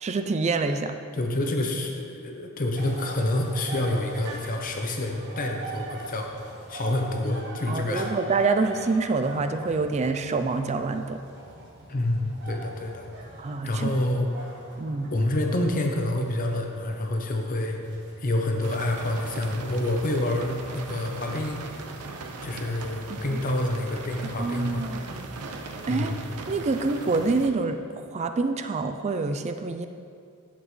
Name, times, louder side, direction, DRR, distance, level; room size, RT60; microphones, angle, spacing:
voice 1, 0.0-1.0 7.7-11.2 13.4-13.9 14.8-15.1 24.4-25.3 25.9-26.2 26.5-29.9, right 3 dB, 30° right, 8 dB, 0.3 m, -26 dB
voice 2, 1.1-6.3 6.7-8.1 11.9-13.1 13.6-14.6 15.1-21.6 22.4-24.9 25.9-26.2, left 1 dB, 40° left, 3 dB, 0.7 m, -28 dB
sound 1, 2.7-20.9, right 2 dB, 50° right, 1.3 m, -42 dB
sound 2, 18.6-27.5, right 3 dB, 90° right, 0.7 m, -39 dB
11.0 x 7.5 x 3.2 m, 2.3 s
head